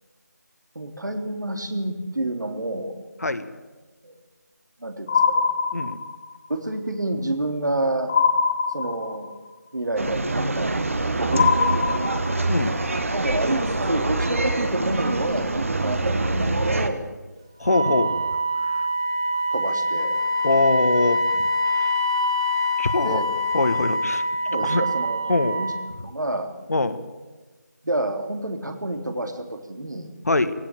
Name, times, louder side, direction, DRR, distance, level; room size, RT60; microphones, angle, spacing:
voice 1, 0.8-3.0 4.0-4.1 4.8-5.5 6.5-8.1 8.7-9.3 9.7-12.1 13.1-17.1 17.7-18.1 18.6-18.7 19.5-20.2 23.0-23.3 24.5-25.7 26.0-26.5 27.8-30.1, right 1 dB, 80° right, 5 dB, 3.5 m, -29 dB
sound 1, 5.1-6.3 8.1-9.3 11.3-12.6, left 5 dB, 10° left, 0.7 m, -22 dB
sound 2, 10.0-16.9, right 2 dB, 45° right, 1.9 m, -25 dB
voice 2, 12.5-12.8 17.6-18.1 20.4-21.5 21.7-21.9 22.8-23.2 23.5-24.2 24.5-24.8 25.3-25.6 26.7-27.0 30.3-30.5, left 2 dB, 55° left, 11 dB, 1.6 m, -23 dB
Wind instrument woodwind instrument, 17.6-25.9, equal, 15° right, 0.9 m, -24 dB
17.0 x 16.5 x 9.1 m, 1.2 s
figure-of-eight pair, 170°, 10 cm